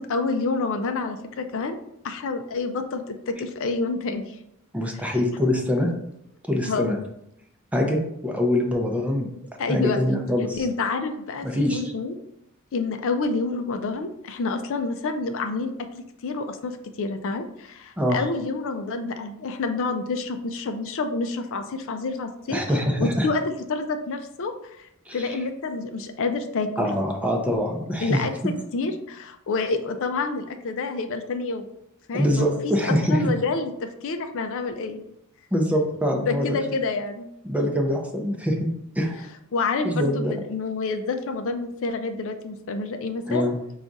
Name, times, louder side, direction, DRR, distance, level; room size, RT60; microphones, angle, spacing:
voice 1, 0.1-1.8 2.0-4.4 5.0-5.2 6.7-6.9 9.6-10.0 10.6-12.1 12.7-26.7 28.0-31.7 32.1-35.0 36.2-37.3 39.5-43.4, left 3 dB, 60° left, 7 dB, 0.4 m, -28 dB
voice 2, 4.7-5.9 6.5-7.0 7.7-9.3 9.7-10.6 11.4-11.9 18.0-18.2 22.5-23.3 25.1-25.4 26.8-28.2 32.1-33.3 35.5-36.6 37.4-38.7 39.0-39.2 39.8-40.3 43.3-43.5, equal, 5° right, 2 dB, 0.6 m, -24 dB
4.8 x 2.4 x 3.9 m, 0.77 s
head